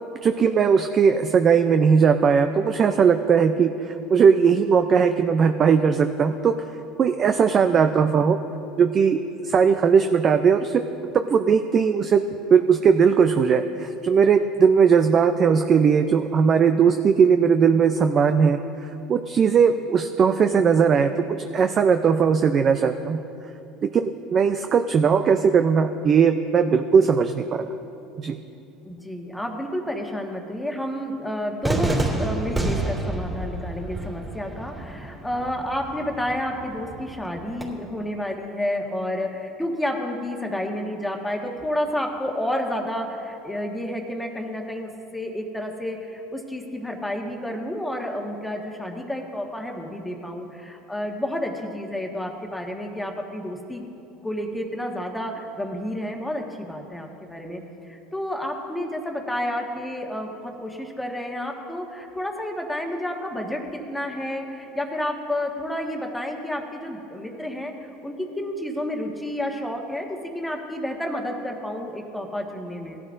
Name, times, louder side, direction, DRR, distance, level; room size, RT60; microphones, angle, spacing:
voice 1, 0.2-6.6 7.0-8.4 8.8-9.2 9.4-10.8 11.1-12.2 12.5-23.2 23.9-27.7 28.2-28.4, right 6 dB, 40° right, 7 dB, 0.5 m, -19 dB
voice 2, 28.8-53.8 54.2-73.0, left 1 dB, 5° left, 1 dB, 1.5 m, -30 dB
Cheering / Fireworks, 31.6-37.6, right 2 dB, 15° right, 2.8 m, -29 dB
18.0 x 12.0 x 2.6 m, 2.7 s
supercardioid pair, 95°, 0 cm